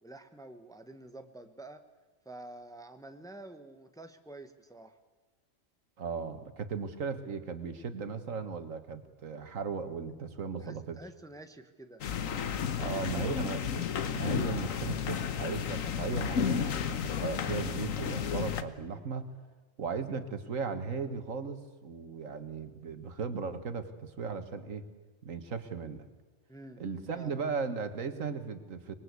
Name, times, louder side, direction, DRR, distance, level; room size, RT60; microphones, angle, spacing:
voice 1, 0.0-1.8 2.2-4.9 10.6-12.0 12.8-13.5 26.5-26.8 27.2-27.4, right 2 dB, 5° left, 8 dB, 1.1 m, -48 dB
voice 2, 6.0-11.0 12.8-19.3 19.8-24.8 25.2-26.1 26.8-28.9, right 5 dB, 80° right, 10 dB, 1.9 m, -37 dB
sound 1, 12.0-18.6, left 8 dB, 80° left, 1.5 m, -32 dB
25.0 x 21.0 x 8.3 m, 1.3 s
omnidirectional pair, 1.4 m